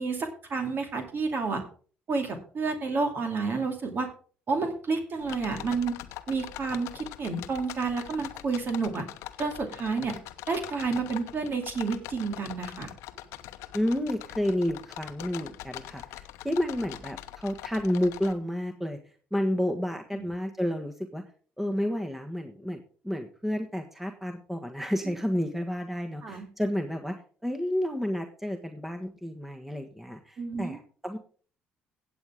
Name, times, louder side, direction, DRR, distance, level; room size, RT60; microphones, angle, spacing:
voice 1, 0.0-1.6 2.1-4.1 4.5-6.0 6.3-9.1 9.4-10.2 10.5-12.9 20.2-20.3 26.2-26.5 30.4-30.8, right 4 dB, 50° right, 5 dB, 2.5 m, -30 dB
sound 1, 5.2-18.3, left 14 dB, 75° left, 0.9 m, -43 dB
voice 2, 13.7-19.0 19.3-21.2 21.6-31.2, left 1 dB, 5° right, 4 dB, 1.4 m, -31 dB
15.5 x 8.2 x 3.6 m, 0.41 s
hypercardioid pair, 60°, 5 cm